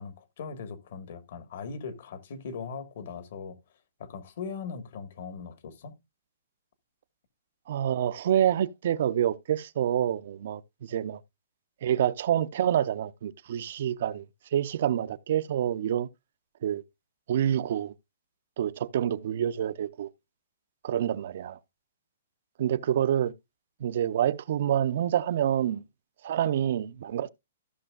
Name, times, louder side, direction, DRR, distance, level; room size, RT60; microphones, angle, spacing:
voice 1, 0.0-3.6 4.0-5.9, left 5 dB, 55° left, 1.5 m, -39 dB
voice 2, 7.7-11.2 11.8-14.3 14.5-16.1 16.6-16.8 17.3-17.9 18.6-20.1 20.8-21.6 22.6-23.3 23.8-25.8 26.2-27.3, right 10 dB, 55° right, 0.6 m, -27 dB
14.5 x 6.0 x 2.4 m
hypercardioid pair, 165°, 0 cm